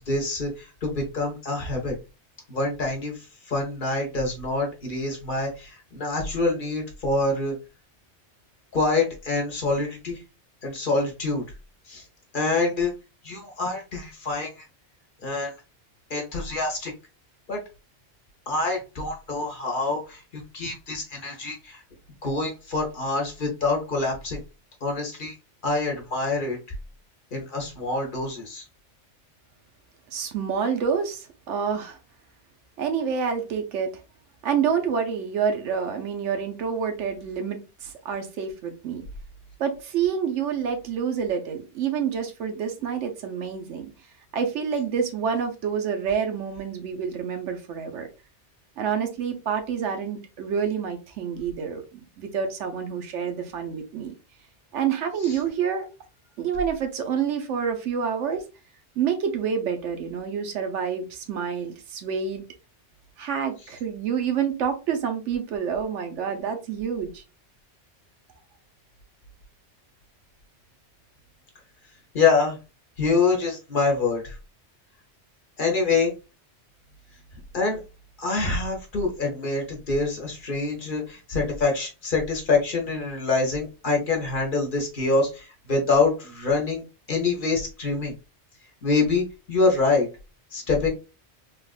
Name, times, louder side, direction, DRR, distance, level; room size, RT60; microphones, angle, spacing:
voice 1, 0.1-2.0 2.5-7.5 8.7-10.2 10.6-11.4 11.9-12.0 12.3-12.9 13.2-14.7 15.2-15.5 16.1-16.9 17.5-17.6 18.5-21.8 22.2-24.4 24.8-25.3 25.6-26.6 27.3-28.6 55.2-55.4 72.1-72.6 73.0-74.4 75.6-76.1 77.5-77.8 78.2-86.8 87.1-88.1 88.8-90.1 90.5-90.9, left 3 dB, 50° left, 1.0 m, -25 dB
voice 2, 30.1-32.0 32.8-33.9 34.4-39.0 39.6-43.9 44.3-48.1 48.8-54.1 54.7-55.9 56.4-58.5 59.0-62.4 63.2-67.2, right 7 dB, 80° right, 1.0 m, -28 dB
3.4 x 2.4 x 2.3 m
omnidirectional pair, 1.2 m